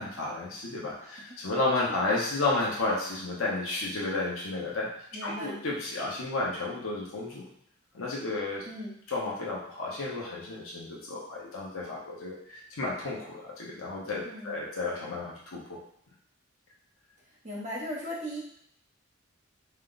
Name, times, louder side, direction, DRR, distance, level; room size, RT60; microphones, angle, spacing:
voice 1, 0.0-4.9 5.2-7.4 7.9-8.6 9.1-15.8, left 2 dB, 85° left, -4 dB, 0.9 m, -32 dB
voice 2, 5.1-5.6 8.6-9.0 14.2-14.5 17.4-18.4, equal, 35° right, -6 dB, 1.1 m, -37 dB
4.3 x 2.3 x 3.9 m, 0.71 s
head